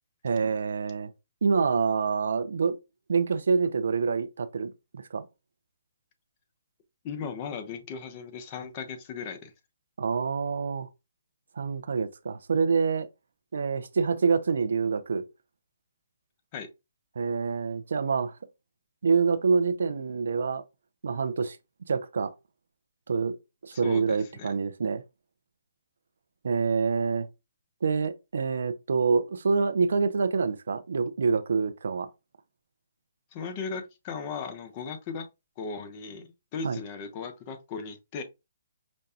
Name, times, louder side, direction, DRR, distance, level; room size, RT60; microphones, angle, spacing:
voice 1, 0.2-1.1 1.4-2.8 3.1-5.2 10.0-10.9 11.6-13.1 13.5-15.2 17.2-18.3 19.0-20.6 21.0-21.6 21.9-22.3 23.1-23.4 23.6-25.0 26.4-27.3 27.8-32.1 36.6-36.8, right 5 dB, 75° right, 0.5 m, -26 dB
voice 2, 7.0-9.5 16.5-16.7 23.7-24.5 33.3-35.3 35.6-38.2, left 5 dB, 30° left, 0.7 m, -37 dB
5.1 x 2.3 x 2.7 m
hypercardioid pair, 155°, 0 cm